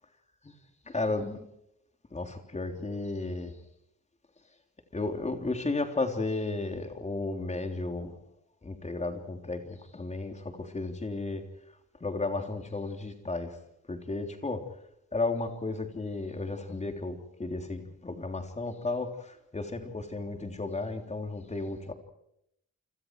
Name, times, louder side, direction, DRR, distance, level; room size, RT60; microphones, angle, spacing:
voice 1, 0.9-1.5 2.1-3.6 4.9-8.2 8.6-11.4 12.0-13.6 13.9-14.6 15.1-21.9, left 3 dB, 25° left, 5 dB, 3.4 m, -33 dB
29.5 x 25.5 x 4.8 m, 0.78 s
wide cardioid pair, 155°, 29 cm